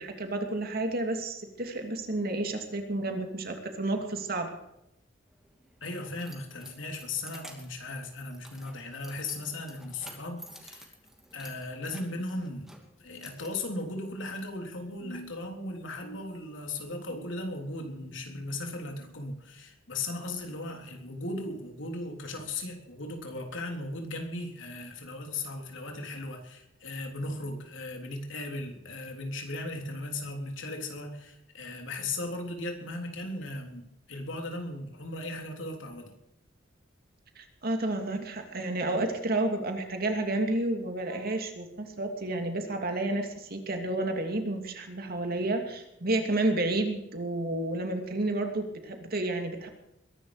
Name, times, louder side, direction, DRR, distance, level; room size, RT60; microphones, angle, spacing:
voice 1, 0.0-4.5 37.4-49.7, right 2 dB, 50° right, 4 dB, 2.7 m, -31 dB
Keys jangling, 5.3-14.4, right 1 dB, ahead, 2.5 m, -52 dB
voice 2, 5.8-10.9 11.3-12.7 13.0-36.1, left 2 dB, 80° left, 3 dB, 3.6 m, -37 dB
21.5 x 11.5 x 5.0 m, 0.86 s
head